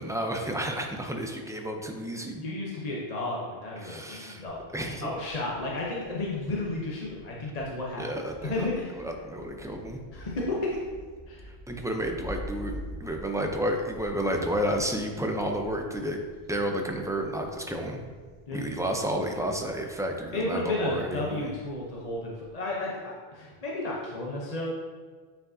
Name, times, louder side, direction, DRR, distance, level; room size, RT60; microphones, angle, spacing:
voice 1, 0.0-2.4 3.8-4.4 4.7-5.1 8.0-8.7 8.9-10.0 11.7-16.2 16.5-18.0 18.5-21.5, equal, 5° right, 2 dB, 0.4 m, -31 dB
voice 2, 2.4-4.6 5.0-8.0 8.4-9.0 10.1-10.8 11.3-11.5 18.5-18.7 20.3-24.7, left 2 dB, 40° left, -4 dB, 0.9 m, -32 dB
Thunder, 4.4-22.5, equal, 70° left, 1.2 m, -47 dB
9.0 x 4.7 x 2.7 m, 1.5 s
omnidirectional pair, 1.1 m